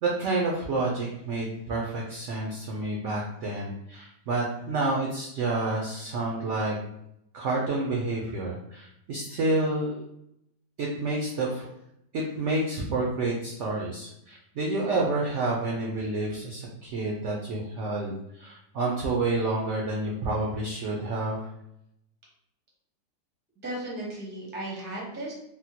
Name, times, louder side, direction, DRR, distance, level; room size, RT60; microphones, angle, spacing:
voice 1, 0.0-6.8 7.3-10.0 10.8-11.7 12.1-21.5, right 2 dB, 80° right, -2 dB, 0.6 m, -29 dB
voice 2, 23.6-25.3, right 1 dB, 15° right, -4 dB, 0.3 m, -35 dB
3.6 x 2.1 x 2.7 m, 0.79 s
omnidirectional pair, 1.8 m